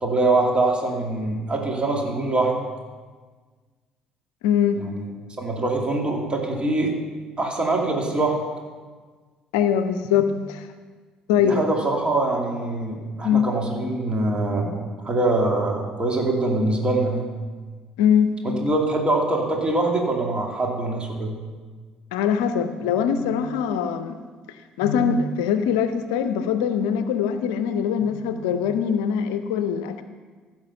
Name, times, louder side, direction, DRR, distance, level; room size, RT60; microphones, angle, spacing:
voice 1, 0.0-2.5 4.7-5.1 5.4-6.9 7.4-8.4 11.4-14.8 15.0-17.3 18.4-21.4, right 2 dB, 30° right, 0 dB, 2.5 m, -23 dB
voice 2, 4.4-4.8 9.5-10.7 11.3-11.6 13.2-13.5 18.0-18.4 22.1-24.2 24.8-30.0, left 8 dB, 70° left, 10 dB, 0.5 m, -22 dB
15.5 x 5.9 x 5.6 m, 1.4 s
figure-of-eight pair, 50°, 4 cm